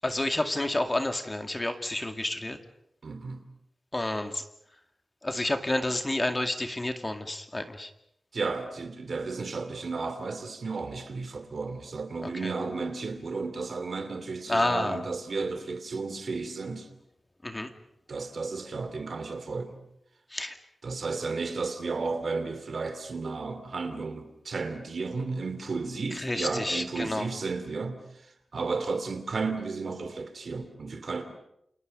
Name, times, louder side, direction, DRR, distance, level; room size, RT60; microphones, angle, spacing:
voice 1, 0.0-2.6 3.9-4.4 5.2-7.9 12.2-12.5 14.5-15.0 17.4-17.7 20.3-20.6 26.1-27.3, left 1 dB, 20° left, 2.1 m, -29 dB
voice 2, 3.0-3.4 8.3-16.9 18.1-19.8 20.8-31.3, right 4 dB, 60° right, 2.8 m, -33 dB
29.5 x 28.0 x 5.4 m
wide cardioid pair, 120°, 0 cm